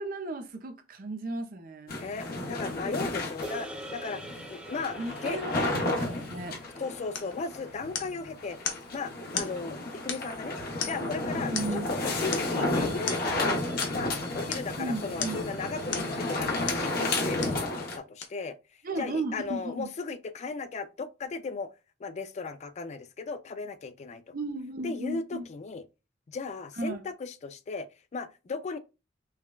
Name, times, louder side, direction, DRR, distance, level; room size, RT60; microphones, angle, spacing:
voice 1, 0.0-1.9 5.0-6.6 11.5-11.9 14.8-15.4 18.8-19.9 24.3-25.5 26.7-27.0, right 2 dB, 50° right, 0.6 m, -35 dB
sound 1, 1.9-18.0, left 2 dB, 55° left, 0.9 m, -32 dB
voice 2, 1.9-5.4 6.8-8.7 8.9-10.6 10.8-18.6 19.0-21.7 22.0-24.3 24.8-25.8 26.3-28.8, left 4 dB, 40° left, 0.4 m, -36 dB
sound 2, 3.4-7.9, equal, 5° right, 0.6 m, -45 dB
sound 3, 7.1-7.4 7.9-8.2 8.6-8.9 9.3-9.6 10.1-10.4 10.8-11.1 11.5-11.9 12.3-12.6 13.1-13.3 13.8-14.0 14.5-14.7 15.2-15.5 15.9-16.2 16.7-16.9 17.4-17.6 18.2-18.3, left 7 dB, 80° left, 0.7 m, -35 dB
5.6 x 2.2 x 2.3 m
head